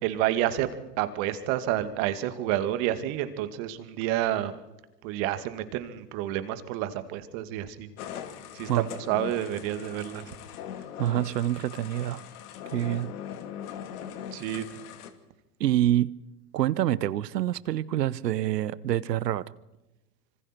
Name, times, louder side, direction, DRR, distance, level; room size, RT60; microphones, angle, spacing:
voice 1, 0.0-0.7 1.0-4.5 5.0-7.9 8.5-10.3 14.3-14.6, right 13 dB, 55° right, 11 dB, 2.4 m, -29 dB
sound 1, 8.0-15.1, left 9 dB, 65° left, 2.6 m, -40 dB
voice 2, 11.0-12.2 12.7-13.1 15.6-16.1 16.5-19.4, right 13 dB, 75° right, 20 dB, 1.0 m, -26 dB
26.5 x 25.0 x 4.6 m, 0.99 s
hypercardioid pair, 90°, 49 cm